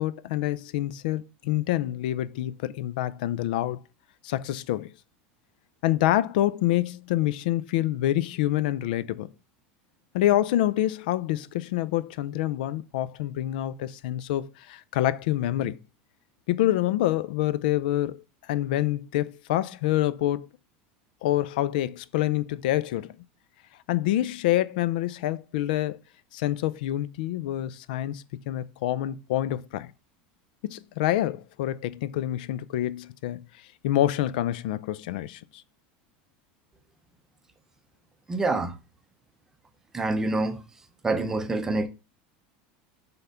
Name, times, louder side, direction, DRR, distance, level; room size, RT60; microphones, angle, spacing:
voice 1, 0.0-3.8 4.2-4.9 5.8-9.3 10.1-15.8 16.5-20.5 21.2-23.2 23.9-26.0 26.3-29.9 30.6-33.4 33.8-35.6, left 14 dB, 70° left, 0.5 m, -27 dB
voice 2, 38.3-38.7 39.9-40.6 41.0-41.9, right 2 dB, 10° right, 0.6 m, -26 dB
7.8 x 3.5 x 5.6 m
supercardioid pair, 175°, 5 cm